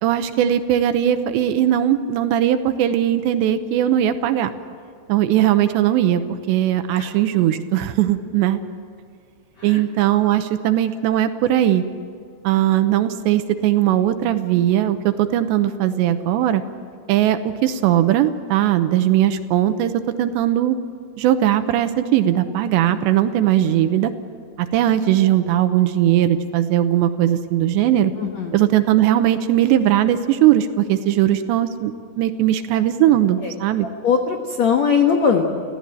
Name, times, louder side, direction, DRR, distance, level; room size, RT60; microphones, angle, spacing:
voice 1, 0.0-4.5 5.1-6.2 6.5-8.6 9.6-11.8 12.4-16.6 17.1-19.9 20.2-20.8 21.2-24.1 24.6-28.1 28.5-33.9, right 12 dB, 80° right, 9 dB, 2.9 m, -19 dB
voice 2, 28.2-28.6 33.4-33.5 34.0-35.6, left 6 dB, 75° left, 3 dB, 1.6 m, -20 dB
28.0 x 16.0 x 8.9 m, 2.3 s
omnidirectional pair, 5.4 m